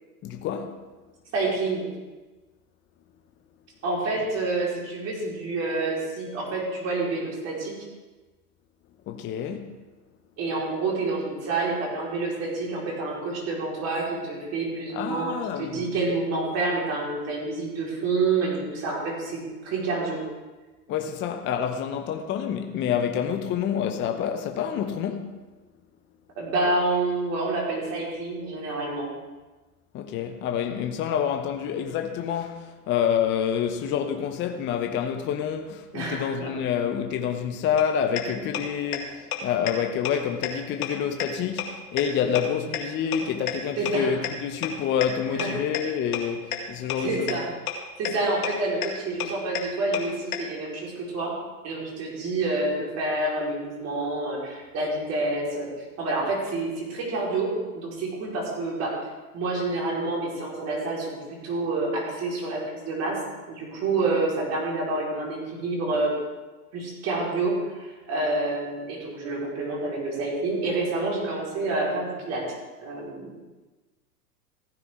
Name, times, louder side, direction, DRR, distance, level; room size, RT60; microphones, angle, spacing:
voice 1, 0.2-0.8 9.1-9.8 14.9-15.9 20.9-25.4 29.9-47.4, left 8 dB, 25° left, 0.8 m, -28 dB
voice 2, 1.3-1.8 3.8-7.7 10.4-20.2 26.4-29.1 35.9-36.5 43.8-44.2 45.3-45.5 47.0-47.5 48.0-51.3 51.6-58.9 59.3-63.2 63.5-66.1 66.7-72.4 72.8-73.3, right 3 dB, 30° right, 4.5 m, -28 dB
sound 1, 37.8-37.9 38.2-38.3 38.5-38.6 38.9-39.0 39.3-39.4 39.7-39.8 40.1-40.2 40.4-40.5 40.8-40.9 41.2-41.3 41.6-41.7 42.0-42.1 42.4-42.5 42.7-42.8 43.1-43.2 43.5-43.6 43.9-44.0 44.2-44.3 44.6-44.7 45.0-45.1 45.4-45.5 45.7-45.8 46.1-46.2 46.5-46.6 46.9-47.0 47.3-47.4 47.7-47.8 48.1-48.2 48.4-48.5 48.8-48.9 49.2-49.3 49.6-49.7 49.9-50.0 50.3-50.4, left 12 dB, 65° left, 2.0 m, -27 dB
15.5 x 9.8 x 3.7 m
hypercardioid pair, 110°, 47 cm